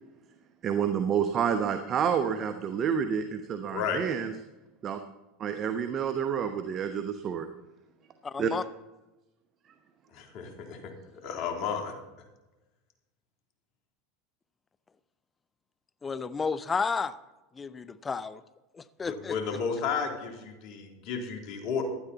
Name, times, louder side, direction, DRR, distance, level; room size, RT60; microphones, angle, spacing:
voice 1, 0.6-4.3 4.8-5.0 5.4-7.5 8.4-8.5, right 7 dB, 40° right, 8 dB, 1.0 m, -29 dB
voice 2, 8.2-8.6 16.0-17.2 17.5-18.4 18.7-19.6, left 5 dB, 20° left, 15 dB, 0.7 m, -32 dB
voice 3, 10.1-10.8 11.2-11.9 19.0-21.8, left 6 dB, 55° left, 3 dB, 3.1 m, -32 dB
16.0 x 11.5 x 4.1 m, 1.1 s
hypercardioid pair, 90°, 0 cm